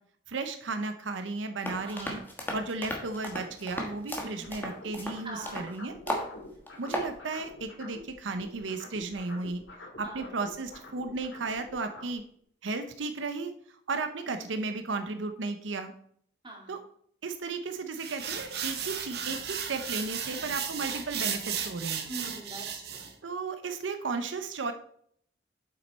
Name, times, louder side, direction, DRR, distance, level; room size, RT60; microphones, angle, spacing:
voice 1, 0.3-2.2 2.5-6.2 6.8-9.6 10.0-12.2 12.6-13.5 13.9-15.9 16.7-16.8 17.2-22.0 23.2-24.7, right 3 dB, 90° right, 8 dB, 0.7 m, -34 dB
sound 1, 1.6-5.7 6.1-6.3 6.7-7.1, left 1 dB, 10° left, 1.2 m, -35 dB
voice 2, 1.8-2.3 4.2-4.7 5.2-5.7 10.0-10.2 14.3-14.7 16.4-16.8 22.1-23.1, right 2 dB, 25° right, -1 dB, 2.0 m, -44 dB
sound 2, 4.4-8.1 8.4-12.1, left 2 dB, 85° left, 2.1 m, -47 dB
sound 3, 18.0-23.1, right 7 dB, 55° right, 1.1 m, -35 dB
7.7 x 6.0 x 4.2 m, 0.64 s
head